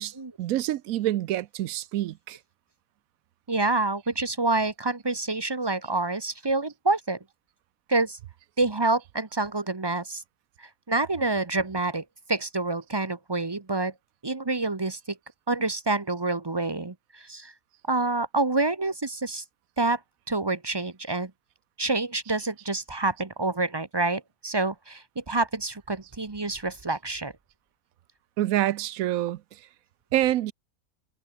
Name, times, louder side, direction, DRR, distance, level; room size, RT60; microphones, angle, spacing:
voice 1, 0.0-2.4 28.4-29.4 30.1-30.5, right 13 dB, 75° right, 1.0 m, -27 dB
voice 2, 3.5-7.2 7.9-8.2 8.6-10.2 10.6-13.9 14.2-15.2 15.5-17.5 17.9-19.4 19.8-20.0 20.3-21.3 21.8-27.3, right 3 dB, 20° right, 0.7 m, -27 dB
omnidirectional pair, 1.5 m